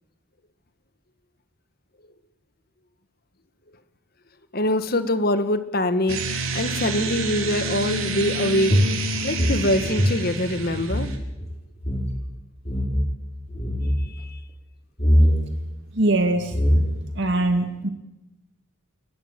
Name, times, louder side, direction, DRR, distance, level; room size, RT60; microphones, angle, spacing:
voice 1, 4.5-8.8 9.2-11.1 14.0-14.4, left 1 dB, 45° left, 11 dB, 1.7 m, -24 dB
sound 1, 6.1-11.2, right 2 dB, 75° right, 3.8 m, -29 dB
sound 2, 8.7-11.1 11.4-11.5 11.8-12.1 12.6-13.1 13.5-14.0 15.0-15.4 16.1-16.2 16.5-17.1, equal, 30° left, 5.3 m, -21 dB
voice 2, 15.9-16.6 17.2-17.9, right 2 dB, 55° right, 6 dB, 1.8 m, -22 dB
29.5 x 14.0 x 9.1 m, 0.97 s
head